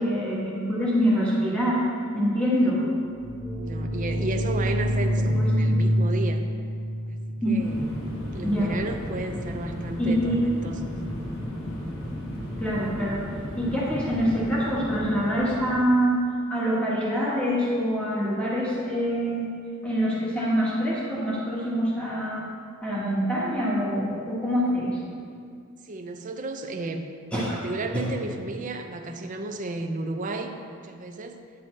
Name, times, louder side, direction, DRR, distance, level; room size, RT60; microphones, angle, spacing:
voice 1, 0.0-1.8 2.1-2.8 5.3-5.8 7.4-7.6 8.4-8.7 10.0-10.4 12.6-13.2 13.6-16.1 16.5-19.5 19.8-22.4 22.8-25.0 27.3-27.6 27.9-28.0, equal, 5° left, -7 dB, 1.5 m, -25 dB
voice 2, 2.5-3.0 3.6-6.4 7.1-7.9 8.3-10.8 25.8-31.4, right 2 dB, 40° right, 5 dB, 0.5 m, -33 dB
sound 1, 3.0-8.6, equal, 35° left, 1.8 m, -27 dB
sound 2, 7.6-15.7, equal, 70° left, 1.4 m, -34 dB
9.5 x 6.9 x 3.3 m, 2.2 s
head